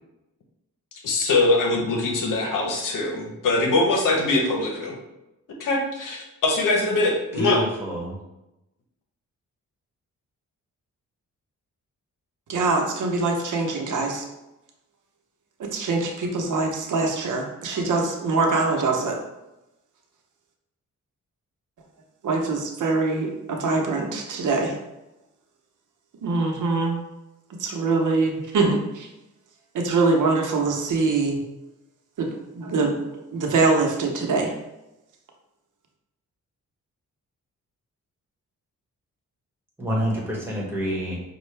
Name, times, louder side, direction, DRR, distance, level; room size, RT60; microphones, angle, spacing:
voice 1, 1.0-5.0 5.6-7.6, left 2 dB, 75° left, 1 dB, 0.9 m, -22 dB
voice 2, 7.4-8.2 39.8-41.2, equal, 5° right, -4 dB, 1.4 m, -27 dB
voice 3, 12.5-14.2 15.6-19.2 22.2-24.7 26.2-27.0 27.6-29.1 29.7-31.4 32.2-32.3 32.5-33.0 33.3-34.5, right 3 dB, 70° right, 1 dB, 0.8 m, -23 dB
5.3 x 2.3 x 3.3 m, 0.94 s
cardioid pair, 95°, 32 cm